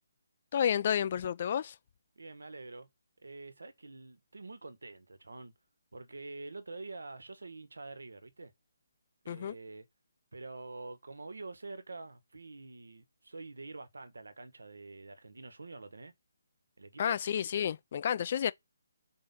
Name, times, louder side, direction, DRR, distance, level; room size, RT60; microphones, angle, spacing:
voice 1, 0.5-1.8 9.3-9.6 17.0-18.5, left 9 dB, 40° left, 0.3 m, -30 dB
voice 2, 2.2-2.9 3.2-5.5 5.9-8.5 9.2-9.9 10.3-16.1 16.8-17.2, right 3 dB, 90° right, 1.3 m, -46 dB
4.8 x 3.8 x 5.7 m
hypercardioid pair, 160°, 0 cm